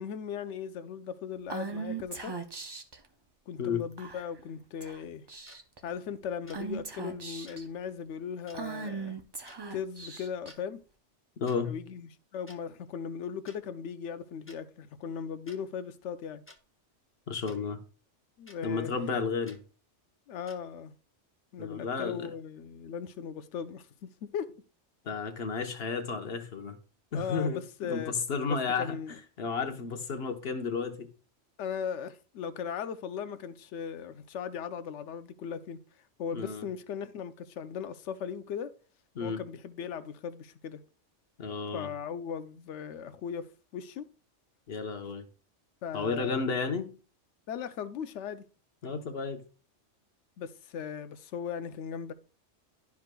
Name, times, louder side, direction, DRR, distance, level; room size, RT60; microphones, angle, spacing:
voice 1, 0.0-2.4 3.5-5.3 5.8-9.2 9.7-10.8 11.6-16.4 18.4-18.9 20.3-20.9 21.5-24.6 27.1-28.1 28.5-29.2 31.6-35.8 36.2-38.7 39.2-40.8 41.7-44.1 45.8-46.4 47.5-48.4 50.4-52.1, left 7 dB, 75° left, 0.9 m, -38 dB
Female speech woman speaking / Whispering, 1.5-3.0 4.0-4.4 4.8-5.0 5.3-5.8 6.5-7.6 8.5-10.5, right 4 dB, 30° right, 0.5 m, -38 dB
sound 1, 5.5-5.6 6.5-6.6 7.5-7.6 8.5-8.6 9.5-9.6 10.3-10.6 11.5-11.6 12.5-12.6 13.5-13.6 14.5-14.6 15.5-15.6 16.5-16.6 17.5-17.6 18.5-18.6 19.5-19.6 20.5-20.6, left 2 dB, 10° left, 0.8 m, -53 dB
voice 2, 11.4-11.8 17.3-17.8 18.6-19.6 21.6-22.3 25.0-26.8 27.1-28.9 29.4-31.1 36.3-36.6 39.1-39.4 41.4-41.9 44.7-45.2 45.9-46.9 48.8-49.4, left 5 dB, 60° left, 1.2 m, -32 dB
11.5 x 4.8 x 2.2 m
omnidirectional pair, 1.2 m